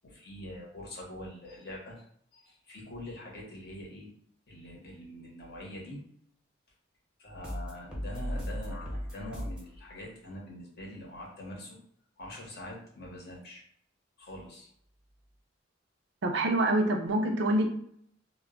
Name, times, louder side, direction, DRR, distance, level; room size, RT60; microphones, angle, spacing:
voice 1, 0.0-2.0 2.3-4.1 4.5-6.0 7.2-11.8 12.2-13.6 14.2-14.7, left 1 dB, 60° left, -2 dB, 0.9 m, -44 dB
sound 1, 7.4-9.7, equal, 5° right, 0.7 m, -36 dB
voice 2, 16.2-17.7, right 1 dB, 65° right, 4 dB, 0.5 m, -26 dB
2.2 x 2.1 x 3.6 m, 0.65 s
head